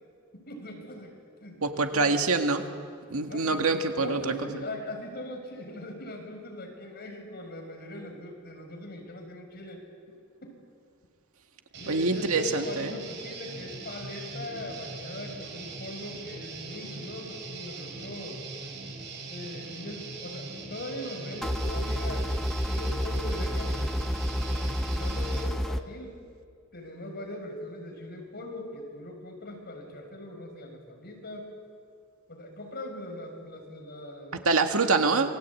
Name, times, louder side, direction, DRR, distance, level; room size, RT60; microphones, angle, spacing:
voice 1, 0.3-1.2 1.4-1.6 1.9-2.3 3.3-3.7 4.0-9.8 10.1-10.6 11.8-18.4 19.3-26.2 26.7-31.5 32.3-34.4, left 1 dB, 50° left, 3 dB, 5.8 m, -40 dB
voice 2, 1.6-2.7 3.1-4.3 11.9-12.9 34.5-35.3, right 3 dB, 85° right, 5 dB, 2.0 m, -25 dB
Guitar, 11.7-25.4, right 3 dB, 55° right, 5.2 m, -41 dB
sound 1, 21.4-25.8, equal, ahead, 0.9 m, -29 dB
27.5 x 21.5 x 8.6 m, 2.2 s
head